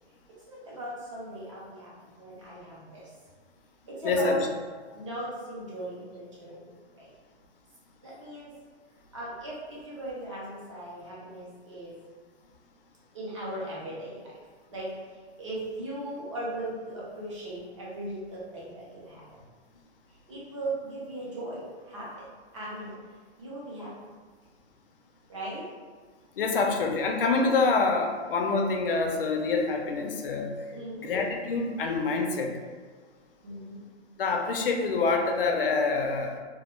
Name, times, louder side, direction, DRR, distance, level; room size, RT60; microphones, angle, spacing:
voice 1, 0.5-3.1 3.9-4.4 4.9-6.7 6.9-7.1 8.0-8.6 9.1-12.0 13.1-14.4 14.7-19.4 20.3-22.3 22.5-22.9 23.4-24.1 25.3-25.7 30.7-31.2 33.4-33.8, right 1 dB, 30° right, -6 dB, 0.5 m, -38 dB
voice 2, 4.0-4.4 26.4-30.5 31.0-32.5 34.2-36.3, left 4 dB, 55° left, 2 dB, 0.4 m, -26 dB
2.2 x 2.1 x 3.0 m, 1.5 s
hypercardioid pair, 175°, 33 cm